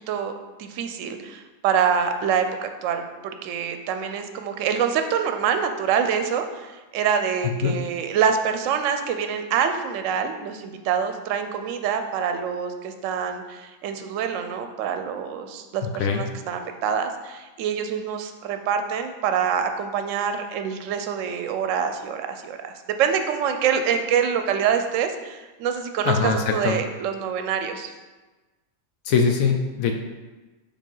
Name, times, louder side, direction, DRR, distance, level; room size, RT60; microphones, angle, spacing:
voice 1, 0.6-22.7 23.0-27.9, right 7 dB, 70° right, 7 dB, 0.9 m, -25 dB
voice 2, 15.8-16.3 26.0-26.8 29.0-29.9, left 6 dB, 75° left, 3 dB, 0.9 m, -22 dB
5.2 x 3.5 x 5.4 m, 1.2 s
omnidirectional pair, 1.5 m